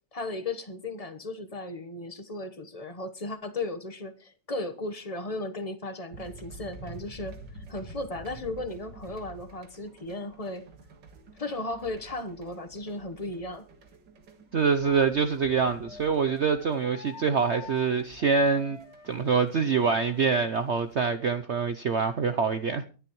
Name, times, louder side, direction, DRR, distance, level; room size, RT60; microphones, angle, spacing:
voice 1, 0.1-10.7 11.4-13.7, left 2 dB, 25° left, 1.0 m, -36 dB
sound 1, 6.1-21.0, right 2 dB, 75° right, 2.3 m, -49 dB
voice 2, 14.5-18.8 19.0-22.8, right 5 dB, 60° right, 0.7 m, -25 dB
Wind instrument woodwind instrument, 14.8-20.3, left 5 dB, 60° left, 2.6 m, -48 dB
23.5 x 10.5 x 3.1 m
omnidirectional pair, 1.9 m